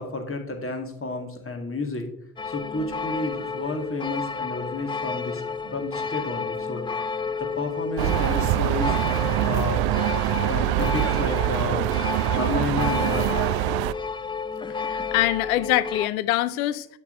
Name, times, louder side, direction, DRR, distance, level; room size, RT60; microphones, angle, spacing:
voice 1, 0.0-2.1 2.4-7.1 7.4-9.0 9.2-13.8, left 3 dB, 30° left, 2.2 m, -31 dB
sound 1, 2.4-16.1, left 5 dB, 10° left, 0.4 m, -31 dB
sound 2, 8.0-13.9, right 16 dB, 60° right, 0.5 m, -24 dB
voice 2, 14.7-16.9, left 15 dB, 75° left, 0.6 m, -24 dB
10.5 x 4.5 x 6.9 m
figure-of-eight pair, 40°, 44 cm